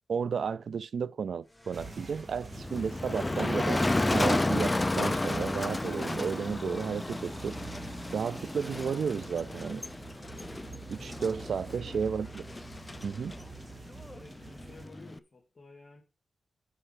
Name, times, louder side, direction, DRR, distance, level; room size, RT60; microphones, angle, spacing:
voice 1, 0.1-3.8 4.1-7.6 8.1-9.8 10.9-12.4 13.0-13.4, right 6 dB, 80° right, 0.4 m, -33 dB
sound 1, 1.5-13.2, left 1 dB, ahead, 1.6 m, -48 dB
sound 2, 1.7-14.8, right 4 dB, 40° right, 1.8 m, -47 dB
Motor vehicle (road), 2.5-15.2, left 2 dB, 20° left, 0.5 m, -32 dB
voice 2, 11.7-12.0 14.1-16.0, left 3 dB, 45° left, 2.4 m, -53 dB
10.0 x 5.7 x 5.0 m
cardioid pair, 70°, 0 cm